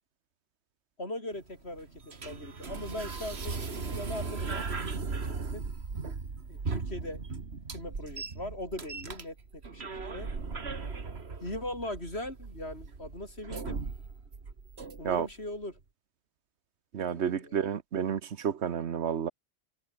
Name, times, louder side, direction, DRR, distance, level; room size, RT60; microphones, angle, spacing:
voice 1, 1.0-1.9 2.2-5.2 5.5-5.6 6.5-7.2 7.7-10.3 11.4-13.8 15.0-15.8 17.1-17.6, left 1 dB, 75° left, 7.7 m, -40 dB
sound 1, 1.3-15.3, right 4 dB, 70° right, 2.3 m, -38 dB
voice 2, 16.9-19.3, right 8 dB, 90° right, 1.3 m, -30 dB
omnidirectional pair, 1.1 m